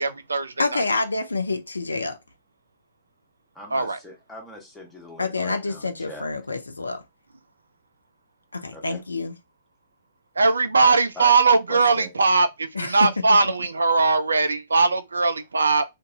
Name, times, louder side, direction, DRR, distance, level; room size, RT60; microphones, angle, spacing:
voice 1, 0.0-0.8 3.7-4.0 10.4-15.8, right 4 dB, 75° right, 0.4 m, -20 dB
voice 2, 0.6-2.2 5.2-7.0 8.5-9.4 12.7-13.5, left 3 dB, 80° left, 0.4 m, -27 dB
voice 3, 3.5-6.2 8.7-9.0 10.8-12.1, equal, 5° left, 1.0 m, -41 dB
2.6 x 2.5 x 2.3 m
figure-of-eight pair, 115°, 0 cm